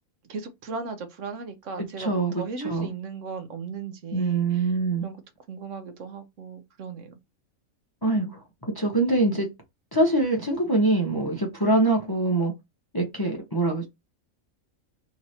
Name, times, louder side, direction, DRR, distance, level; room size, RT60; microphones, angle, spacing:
voice 1, 0.3-4.7 5.0-5.2 5.5-7.2, right 5 dB, 65° right, 1.0 m, -37 dB
voice 2, 1.8-2.9 4.1-5.1 8.0-9.5 9.9-12.5 12.9-13.9, right 2 dB, 20° left, 0.6 m, -24 dB
3.1 x 2.7 x 4.1 m
omnidirectional pair, 1.4 m